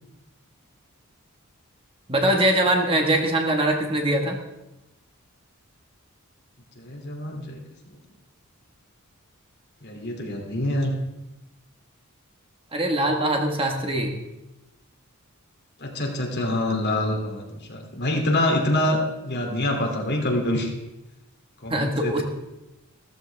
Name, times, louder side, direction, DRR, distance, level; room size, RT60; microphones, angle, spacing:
voice 1, 2.1-4.4 12.7-14.1 21.7-22.2, right 1 dB, 25° right, 2 dB, 1.6 m, -22 dB
voice 2, 6.8-7.6 9.8-10.9 15.8-20.7 21.6-22.2, left 1 dB, 55° left, 1 dB, 2.9 m, -26 dB
15.5 x 14.0 x 3.5 m, 0.96 s
head